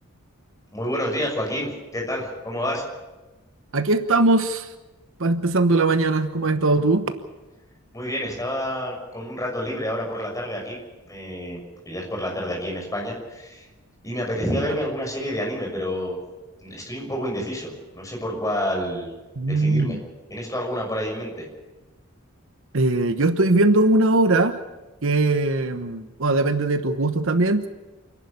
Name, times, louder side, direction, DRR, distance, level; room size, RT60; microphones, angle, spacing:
voice 1, 0.7-2.8 7.9-10.8 11.1-11.6 11.8-13.7 14.0-16.2 16.6-19.1 19.5-20.0 20.3-21.5, equal, 15° left, 0 dB, 6.6 m, -29 dB
voice 2, 3.7-4.7 5.2-7.1 19.4-20.0 22.7-24.6 25.0-27.7, right 2 dB, 65° right, 9 dB, 1.1 m, -20 dB
28.5 x 11.0 x 8.6 m, 1.1 s
head